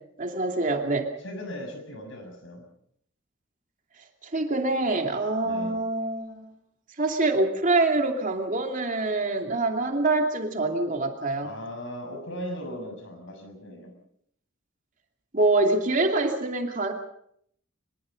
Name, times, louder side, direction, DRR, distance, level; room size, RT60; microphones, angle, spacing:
voice 1, 0.2-1.1 4.2-6.5 7.0-11.5 15.3-16.9, right 2 dB, 40° right, 3 dB, 2.7 m, -25 dB
voice 2, 1.2-2.7 5.4-5.8 11.4-13.9, equal, 65° left, 5 dB, 6.6 m, -38 dB
23.5 x 22.0 x 5.3 m, 0.69 s
head